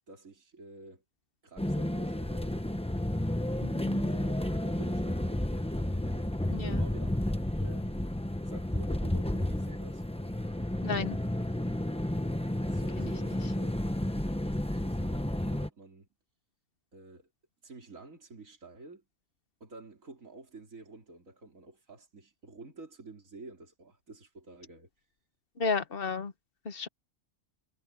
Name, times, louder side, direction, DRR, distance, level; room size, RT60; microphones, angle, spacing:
voice 1, 0.1-1.0 1.4-2.6 4.1-6.3 6.5-7.3 7.6-8.1 8.4-10.0 12.6-13.8 14.5-16.1 16.9-17.3 17.6-19.0 19.6-24.9, right 2 dB, 65° right, 4.2 m, -50 dB
sound 1, 1.6-15.7, left 1 dB, 5° left, 0.8 m, -31 dB
voice 2, 10.8-11.2 13.0-13.1 25.6-26.3 26.6-26.9, left 4 dB, 45° left, 1.2 m, -33 dB
omnidirectional pair, 1.5 m